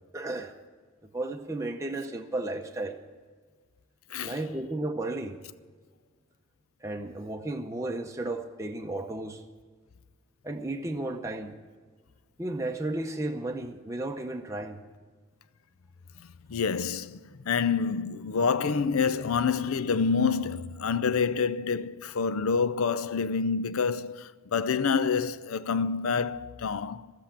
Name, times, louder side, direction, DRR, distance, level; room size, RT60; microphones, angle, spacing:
voice 1, 0.1-0.5 1.1-3.0 4.2-5.4 6.8-9.4 10.4-11.5 12.4-14.8, right 2 dB, 15° right, 0.7 m, -33 dB
voice 2, 16.5-27.1, left 5 dB, 75° left, 0.5 m, -27 dB
14.0 x 8.0 x 8.7 m
head